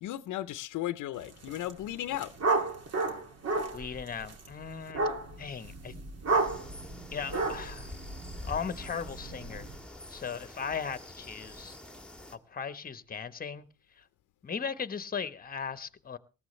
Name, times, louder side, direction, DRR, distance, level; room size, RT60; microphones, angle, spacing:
voice 1, 0.0-2.3, left 13 dB, 80° left, 0.7 m, -35 dB
sound 1, 1.3-1.7 2.0-9.8, right 3 dB, 55° right, 2.6 m, -33 dB
voice 2, 3.7-5.1 5.4-5.9 7.1-7.9 8.4-9.7 10.1-11.8 12.5-13.7 14.0-14.1 14.4-16.2, left 6 dB, 30° left, 1.0 m, -37 dB
sound 2, 6.3-12.4, left 2 dB, 5° left, 1.5 m, -47 dB
19.0 x 14.0 x 3.2 m
cardioid pair, 90°, 30 cm